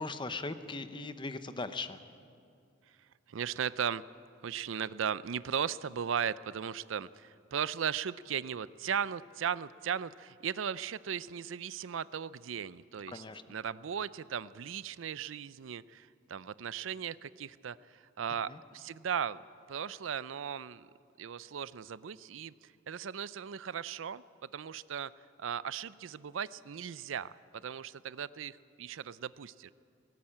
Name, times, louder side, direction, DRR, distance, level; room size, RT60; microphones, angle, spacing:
voice 1, 0.0-2.0 13.1-13.6 18.5-18.6, left 3 dB, 25° left, 11 dB, 0.9 m, -39 dB
voice 2, 3.3-4.0 4.4-13.2 13.5-19.4 19.7-20.9 21.2-25.1 25.4-29.7, right 8 dB, 80° right, 18 dB, 0.5 m, -37 dB
18.0 x 18.0 x 8.8 m, 2.3 s
head